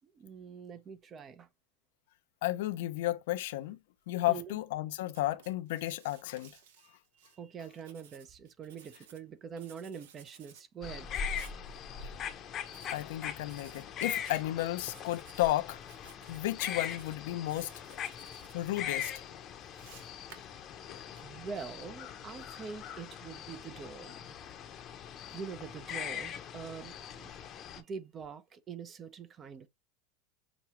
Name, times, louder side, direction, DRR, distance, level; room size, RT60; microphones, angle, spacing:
voice 1, 0.0-1.5 4.3-4.6 6.8-11.6 18.2-18.5 19.9-20.1 21.2-24.4 25.3-27.3 27.8-29.7, right 6 dB, 30° right, 0.7 m, -45 dB
voice 2, 2.4-3.8 4.1-6.6 12.9-18.3 18.5-19.4 20.9-21.0, left 16 dB, 75° left, 0.6 m, -33 dB
Writing, 5.1-7.4 7.7-9.2 9.6-10.6 11.2-11.6 12.7-13.1 13.4-14.4 14.8-15.5 15.8-16.4 16.7-17.2 17.5-18.5 18.9-21.2, right 8 dB, 75° right, 1.1 m, -57 dB
sound 1, 10.8-27.8, left 8 dB, 35° left, 0.8 m, -41 dB
6.0 x 2.3 x 2.9 m
supercardioid pair, 125°, 0 cm